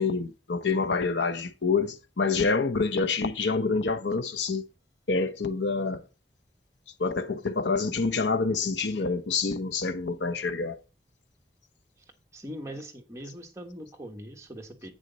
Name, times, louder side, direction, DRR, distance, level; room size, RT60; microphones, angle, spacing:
voice 1, 0.0-4.6 5.1-6.0 7.0-10.8, left 4 dB, 85° left, 0.9 m, -27 dB
voice 2, 12.3-14.9, equal, 15° right, 1.4 m, -41 dB
9.1 x 6.2 x 4.0 m
head